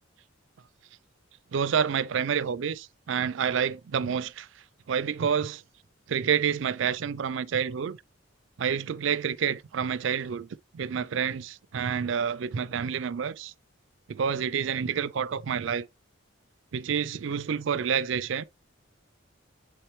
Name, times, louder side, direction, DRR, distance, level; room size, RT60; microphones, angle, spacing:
voice 1, 1.5-4.5 4.9-5.6 6.1-8.0 8.6-10.5 10.7-13.5 14.1-15.9 16.7-18.4, right 7 dB, 70° right, 0.4 m, -28 dB
7.6 x 4.4 x 3.1 m
head